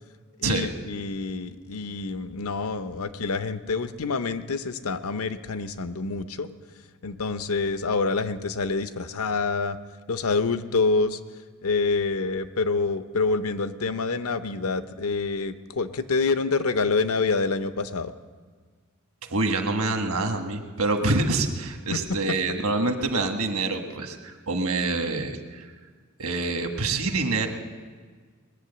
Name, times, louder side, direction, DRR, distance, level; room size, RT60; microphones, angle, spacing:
voice 1, 0.4-6.5 7.0-9.8 10.1-11.2 11.6-18.1 21.9-22.0, left 4 dB, 75° left, 11 dB, 0.7 m, -27 dB
voice 2, 19.3-25.7 26.2-27.5, right 3 dB, 70° right, 5 dB, 1.4 m, -26 dB
20.5 x 8.5 x 6.9 m, 1.5 s
head